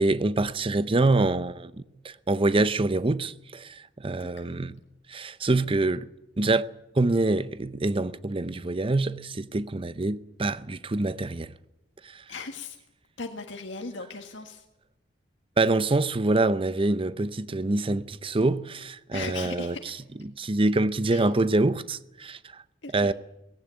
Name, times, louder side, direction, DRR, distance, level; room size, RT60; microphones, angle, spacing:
voice 1, 0.0-1.7 2.0-4.7 5.1-6.1 6.4-6.7 7.0-11.5 12.1-12.2 15.6-19.7 20.4-22.6 22.9-23.1, right 2 dB, 30° right, 0.6 m, -25 dB
voice 2, 4.2-4.6 12.3-12.8 13.2-14.7 19.1-20.0 21.1-21.3 22.8-23.1, left 4 dB, 75° left, 1.8 m, -38 dB
18.5 x 16.5 x 9.4 m
head